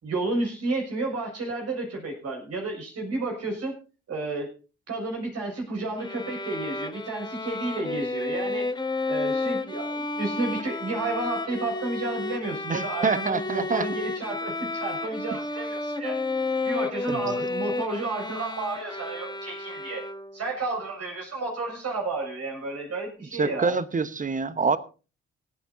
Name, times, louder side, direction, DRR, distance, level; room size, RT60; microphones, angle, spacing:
voice 1, 0.0-3.7 4.1-4.5 4.9-8.7 9.1-16.2 16.6-20.0 20.3-23.8, right 2 dB, 50° right, 0 dB, 6.1 m, -31 dB
Bowed string instrument, 6.0-20.5, left 3 dB, 15° left, 1.5 m, -31 dB
voice 2, 12.7-13.9 17.1-17.4 23.3-24.8, right 4 dB, 25° right, 15 dB, 1.2 m, -26 dB
25.0 x 9.3 x 2.8 m, 0.35 s
figure-of-eight pair, 45°, 34 cm